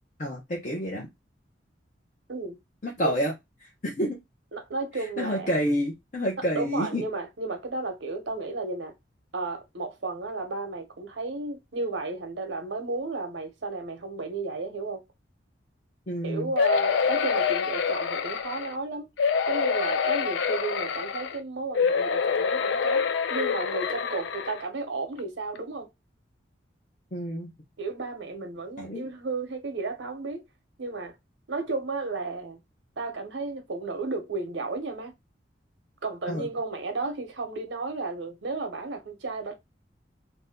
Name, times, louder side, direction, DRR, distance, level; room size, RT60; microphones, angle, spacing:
voice 1, 0.2-1.1 2.8-3.3 3.6-4.2 4.9-7.0 16.1-16.5 27.1-27.5 28.8-29.1 36.3-36.5, equal, 45° left, 0.7 m, -29 dB
voice 2, 4.5-5.5 6.5-8.9 9.3-15.0 16.2-19.1 19.5-25.9 27.8-30.4 30.8-31.1 31.5-32.6 33.0-35.1 36.0-39.5, right 3 dB, 80° right, 0.8 m, -33 dB
Angry Dinosaur, 16.6-18.7 19.2-21.4 21.7-24.6 25.2-25.3 25.6-25.7, left 6 dB, 70° left, 0.4 m, -26 dB
2.7 x 2.2 x 3.5 m
head